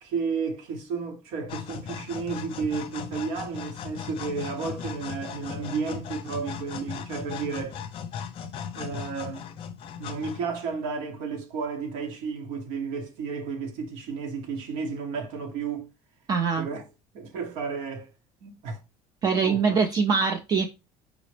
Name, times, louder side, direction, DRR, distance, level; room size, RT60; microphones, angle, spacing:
voice 1, 0.0-7.8 8.7-9.5 10.0-15.9 16.5-16.9 17.1-18.1 18.4-18.8 19.4-19.8, right 5 dB, 80° right, 1.0 m, -32 dB
sound 1, 1.5-10.8, left 7 dB, 50° left, 0.5 m, -38 dB
voice 2, 16.3-16.7 19.2-20.7, right 5 dB, 35° right, 0.4 m, -23 dB
4.8 x 2.0 x 3.1 m
cardioid pair, 140°, 12 cm